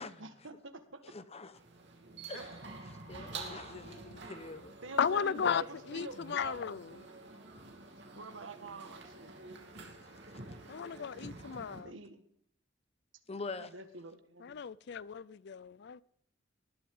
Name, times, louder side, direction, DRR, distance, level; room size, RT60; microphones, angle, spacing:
voice 1, 0.2-1.0 2.3-2.5 4.8-6.6 8.1-9.3 11.8-12.2 13.6-14.6, right 3 dB, 85° right, 1.5 m, -46 dB
voice 2, 1.1-1.5 2.3-2.5 3.1-4.7 13.3-13.7, left 3 dB, 35° left, 0.9 m, -44 dB
sound 1, 1.5-11.8, right 3 dB, 65° right, 2.8 m, -49 dB
voice 3, 5.0-7.0 10.7-11.9 14.4-16.0, left 7 dB, 60° left, 0.4 m, -34 dB
19.0 x 11.5 x 3.7 m
head